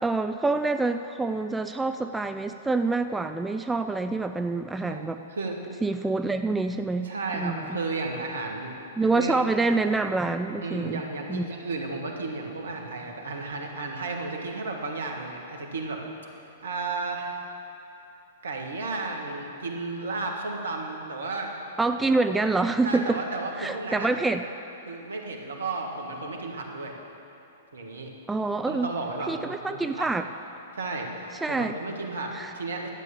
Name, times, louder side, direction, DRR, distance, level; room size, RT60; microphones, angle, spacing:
voice 1, 0.0-5.2 5.8-7.8 9.0-11.0 11.3-11.5 21.8-23.2 23.6-24.4 28.3-28.9 29.3-30.3 31.4-31.7 32.3-32.5, right 3 dB, 10° right, 8 dB, 0.4 m, -26 dB
voice 2, 4.8-5.6 7.0-8.7 9.0-9.4 10.6-16.0 16.6-17.4 18.4-21.5 22.8-24.1 24.8-27.0 27.7-28.1 28.7-30.1 30.8-32.9, right 3 dB, 70° right, 2 dB, 1.7 m, -33 dB
12.0 x 8.4 x 7.2 m, 2.8 s
figure-of-eight pair, 105°, 0 cm